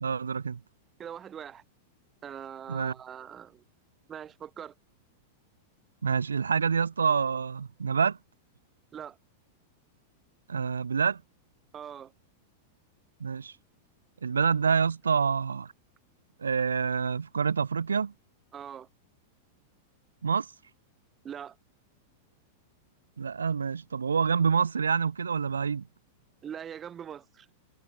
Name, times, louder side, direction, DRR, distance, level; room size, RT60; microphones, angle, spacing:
voice 1, 0.0-0.6 2.7-2.9 6.0-8.2 10.5-11.2 13.2-13.5 14.2-15.7 16.4-18.1 20.2-20.5 23.2-25.8, right 6 dB, 75° right, 0.3 m, -27 dB
voice 2, 1.0-1.6 2.2-3.6 4.1-4.7 8.9-9.2 11.7-12.1 18.5-18.9 21.2-21.6 26.4-27.5, right 8 dB, 25° right, 0.8 m, -42 dB
figure-of-eight pair, 95°, 0 cm